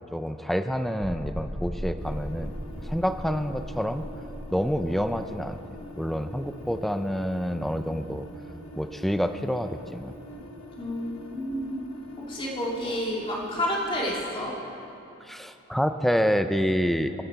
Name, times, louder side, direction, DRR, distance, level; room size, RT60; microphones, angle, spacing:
voice 1, 0.1-2.6 2.8-4.0 4.5-5.6 5.9-8.3 8.7-10.1 12.8-13.0 15.2-17.2, equal, ahead, 9 dB, 0.4 m, -27 dB
sound 1, 1.0-8.1, equal, 20° right, 2.6 m, -38 dB
sound 2, 2.0-14.3, left 1 dB, 80° left, 1.3 m, -45 dB
voice 2, 10.8-11.8 12.2-14.5, equal, 25° left, -4 dB, 2.2 m, -30 dB
22.0 x 9.6 x 4.7 m, 3.0 s
head